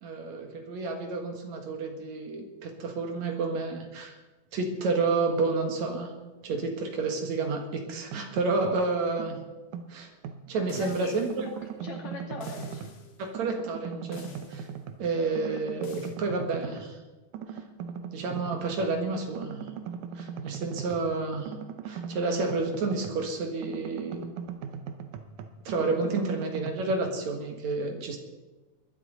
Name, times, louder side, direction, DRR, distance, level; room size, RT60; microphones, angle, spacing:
voice 1, 0.0-4.1 4.5-6.1 6.4-9.4 9.9-10.1 10.5-11.4 13.2-14.7 15.0-17.0 17.5-17.6 18.1-19.6 20.1-21.5 21.8-24.2 25.6-28.2, right 3 dB, 70° right, 4 dB, 2.9 m, -30 dB
sound 1, 7.9-8.9 9.2-10.9 11.3-13.1 13.3-15.1 15.4-16.9 17.3-19.0 19.3-23.3 23.6-27.0, right 7 dB, 90° right, 2.3 m, -40 dB
voice 2, 10.7-11.1 11.4-11.5 11.8-12.9, left 3 dB, 70° left, 0 dB, 3.8 m, -41 dB
sound 2, 10.7-11.5 12.4-13.1 14.1-14.7 15.8-16.2, left 6 dB, 50° left, 2.2 m, -47 dB
21.5 x 12.0 x 4.0 m, 1.2 s
omnidirectional pair, 3.4 m